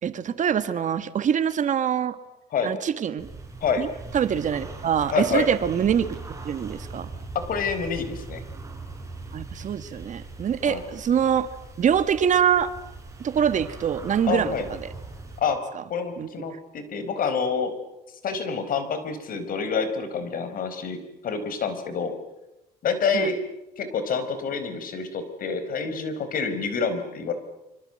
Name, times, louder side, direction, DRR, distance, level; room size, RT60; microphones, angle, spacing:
voice 1, 0.0-2.2 2.6-3.3 3.8-3.9 4.1-6.2 6.4-7.1 9.3-11.5 11.8-12.7 13.2-14.9 16.2-16.3 23.1-23.3, right 8 dB, 45° right, 11 dB, 1.7 m, -24 dB
sound 1, 3.2-15.4, right 3 dB, 20° right, 6.7 m, -40 dB
voice 2, 5.1-5.5 7.5-8.4 10.6-10.8 14.3-14.7 15.4-15.6 15.9-17.7 18.2-21.0 21.2-22.1 22.8-23.3 23.8-27.3, left 5 dB, 55° left, 10 dB, 4.6 m, -27 dB
25.5 x 25.5 x 7.9 m, 0.93 s
cardioid pair, 110°, 17 cm